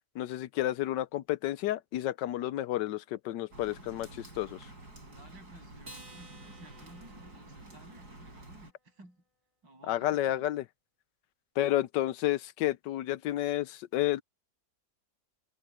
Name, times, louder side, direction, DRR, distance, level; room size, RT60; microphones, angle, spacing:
voice 1, 0.1-4.7 9.9-10.6 11.6-14.2, left 14 dB, 75° left, 1.2 m, -31 dB
Rain, 3.5-8.7, right 2 dB, 55° right, 7.5 m, -50 dB
voice 2, 5.1-9.2 9.6-10.4, right 1 dB, 80° right, 8.4 m, -55 dB
Acoustic guitar, 5.8-8.5, right 1 dB, 15° right, 2.2 m, -54 dB
omnidirectional pair, 2.0 m